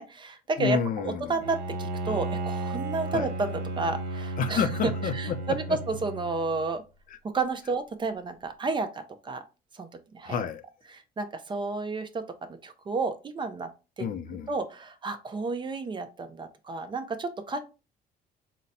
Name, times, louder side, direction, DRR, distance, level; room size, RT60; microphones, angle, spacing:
voice 1, 0.0-4.7 5.1-6.8 7.3-9.4 9.7-9.9 10.1-10.4 10.9-13.7 14.0-14.1 14.5-17.6, right 3 dB, 30° right, 0.5 m, -31 dB
voice 2, 0.6-1.4 3.1-3.3 4.4-5.8 7.1-7.2 10.2-10.6 14.0-14.5, left 7 dB, 55° left, 0.5 m, -30 dB
Bowed string instrument, 1.4-6.8, right 2 dB, 75° right, 1.0 m, -34 dB
3.9 x 2.1 x 4.1 m
cardioid pair, 110°, 17 cm